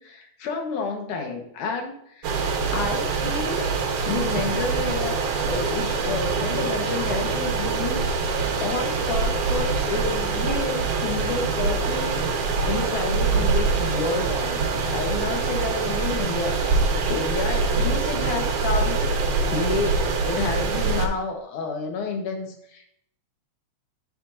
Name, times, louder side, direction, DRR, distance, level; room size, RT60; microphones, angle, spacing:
voice 1, 0.0-3.7 4.1-12.2 12.6-22.9, left 4 dB, 85° left, 3 dB, 3.1 m, -30 dB
sound 1, 2.2-21.1, right 4 dB, 85° right, 2.9 m, -24 dB
11.0 x 7.9 x 2.8 m, 0.71 s
omnidirectional pair, 3.4 m